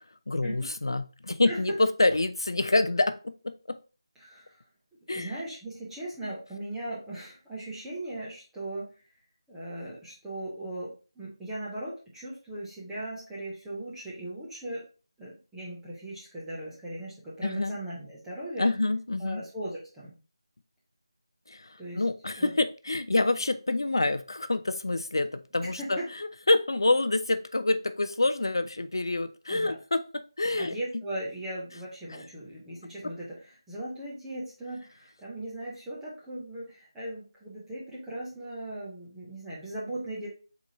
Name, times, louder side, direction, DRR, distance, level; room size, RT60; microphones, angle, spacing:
voice 1, 0.3-3.8 5.1-5.3 17.4-17.8 18.6-19.4 21.5-26.0 26.5-30.7, left 2 dB, 55° left, 11 dB, 0.3 m, -27 dB
voice 2, 4.2-4.6 5.1-8.9 9.5-14.9 15.2-18.7 19.2-20.1 21.8-22.0 22.4-22.5 25.5-26.1 29.5-29.8 30.6-40.3, right 1 dB, ahead, -8 dB, 0.5 m, -38 dB
4.6 x 4.0 x 2.7 m, 0.34 s
figure-of-eight pair, 180°, 3 cm